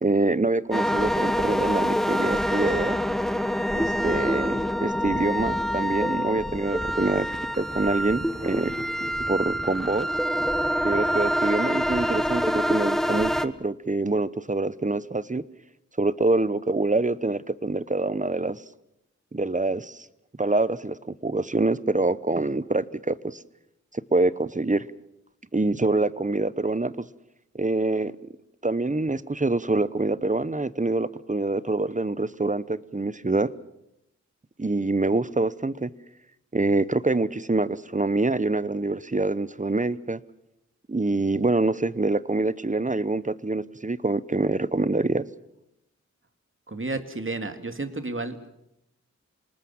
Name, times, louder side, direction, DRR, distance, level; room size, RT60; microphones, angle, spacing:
voice 1, 0.0-3.0 3.7-7.3 7.6-8.9 9.3-10.1 10.8-15.4 16.0-18.6 19.3-20.1 20.4-23.4 23.9-24.8 25.5-27.1 27.5-28.1 28.6-33.5 34.6-35.9 36.5-40.2 40.9-45.2, right 2 dB, 25° right, 17 dB, 0.9 m, -25 dB
sound 1, 0.7-13.4, equal, ahead, 1.3 m, -26 dB
voice 2, 46.7-48.5, right 2 dB, 45° right, 8 dB, 2.4 m, -32 dB
27.5 x 19.5 x 7.3 m, 0.83 s
wide cardioid pair, 55°, 30 cm